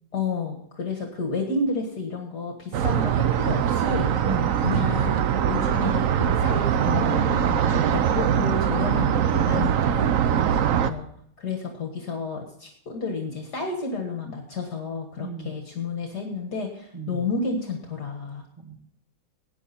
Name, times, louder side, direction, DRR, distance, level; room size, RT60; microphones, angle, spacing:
voice 1, 0.1-4.1 4.6-10.1 10.8-11.1 11.4-18.4, left 4 dB, 50° left, 3 dB, 2.1 m, -31 dB
sound 1, 2.7-10.9, right 9 dB, 90° right, 0.7 m, -22 dB
voice 2, 4.2-4.6 15.2-15.5 16.9-17.3 18.6-18.8, right 3 dB, 20° right, 2 dB, 1.6 m, -34 dB
18.0 x 9.8 x 4.3 m, 0.67 s
omnidirectional pair, 2.3 m